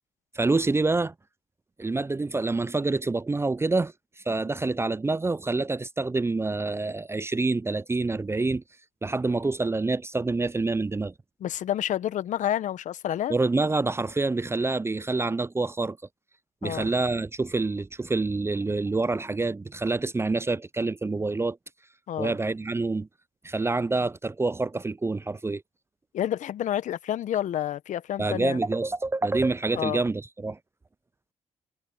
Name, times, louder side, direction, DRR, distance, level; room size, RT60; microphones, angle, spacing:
voice 1, 0.3-1.1 1.8-3.9 4.3-8.6 9.0-11.1 13.3-16.0 16.6-21.6 22.2-23.1 23.4-25.6 28.2-30.6, right 3 dB, 20° right, 0.5 m, -27 dB
voice 2, 11.4-13.3 16.6-16.9 22.1-22.3 26.1-28.6 29.7-30.0, left 11 dB, 65° left, 1.2 m, -29 dB
hypercardioid pair, 50°, 14 cm